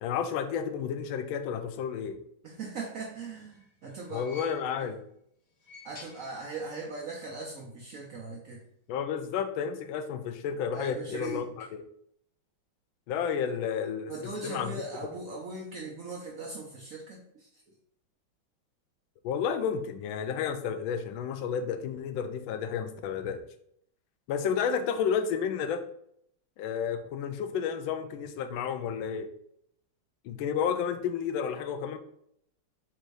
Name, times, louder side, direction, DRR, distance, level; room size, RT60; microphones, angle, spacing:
voice 1, 0.0-2.2 4.1-5.0 8.9-11.8 13.1-14.7 19.2-23.4 24.3-25.8 26.6-29.3 30.2-32.0, left 7 dB, 75° left, 9 dB, 1.3 m, -31 dB
voice 2, 2.4-4.3 4.8-4.9 5.8-8.6 10.7-11.4 14.1-17.5, right 3 dB, 90° right, -1 dB, 0.7 m, -39 dB
sound 1, 3.1-5.0 5.5-6.9 7.1-7.2 8.3-8.4, left 3 dB, 50° left, 1.2 m, -52 dB
4.3 x 2.6 x 4.7 m, 0.70 s
omnidirectional pair, 2.3 m